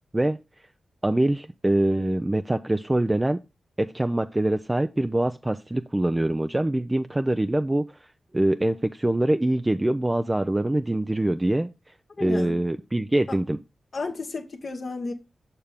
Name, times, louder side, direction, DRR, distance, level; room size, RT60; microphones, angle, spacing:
voice 1, 1.0-3.4 3.8-8.0 8.3-11.7 12.2-13.6, right 1 dB, 20° right, 0.4 m, -24 dB
voice 2, 12.2-12.6 13.3-13.4 13.9-15.1, left 3 dB, 60° left, 1.0 m, -32 dB
6.7 x 5.6 x 3.4 m
supercardioid pair, 45°, 0 cm